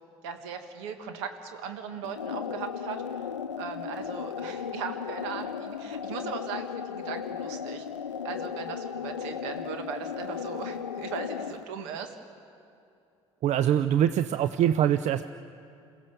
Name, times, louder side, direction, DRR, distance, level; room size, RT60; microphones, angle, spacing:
voice 1, 0.2-3.0 3.6-7.9 8.2-12.2, right 6 dB, 70° right, 6 dB, 1.8 m, -38 dB
sound 1, 2.0-11.6, left 7 dB, 90° left, 0.5 m, -36 dB
voice 2, 13.4-15.2, right 10 dB, 50° right, 12 dB, 0.6 m, -23 dB
28.0 x 16.0 x 6.8 m, 2.6 s
hypercardioid pair, 55°, 15 cm